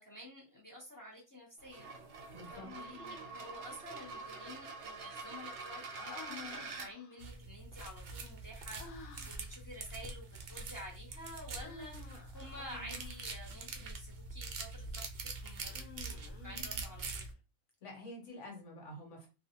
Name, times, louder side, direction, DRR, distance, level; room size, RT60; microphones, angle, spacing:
voice 1, 0.0-1.9 2.5-17.3, equal, 20° left, -3 dB, 0.6 m, -51 dB
sound 1, 1.6-6.9, right 4 dB, 65° right, 0.8 m, -46 dB
voice 2, 2.3-2.7 17.8-19.3, left 1 dB, 65° left, 0 dB, 1.3 m, -48 dB
Human voice, 2.6-3.5 5.9-7.3 8.8-9.6 11.6-13.4 15.6-17.2, left 5 dB, 90° left, 1.0 m, -52 dB
sound 2, 7.2-17.3, right 3 dB, 85° right, 0.4 m, -44 dB
2.4 x 2.4 x 2.7 m, 0.30 s
omnidirectional pair, 1.4 m